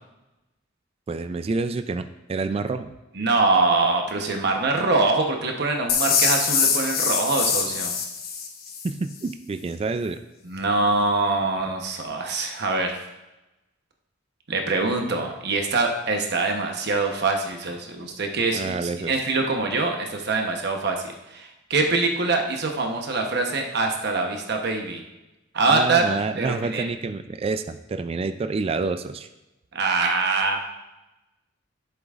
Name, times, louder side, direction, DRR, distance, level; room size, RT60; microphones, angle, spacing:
voice 1, 1.1-2.9 8.8-10.2 18.5-19.1 25.7-29.3, right 4 dB, 30° right, 10 dB, 0.3 m, -28 dB
voice 2, 3.1-7.9 10.4-13.0 14.5-25.0 25.5-26.0 26.4-26.9 29.7-30.7, right 3 dB, 60° right, 3 dB, 1.0 m, -24 dB
sound 1, 5.9-8.9, left 6 dB, 50° left, 1.0 m, -23 dB
11.0 x 7.8 x 2.5 m, 0.99 s
head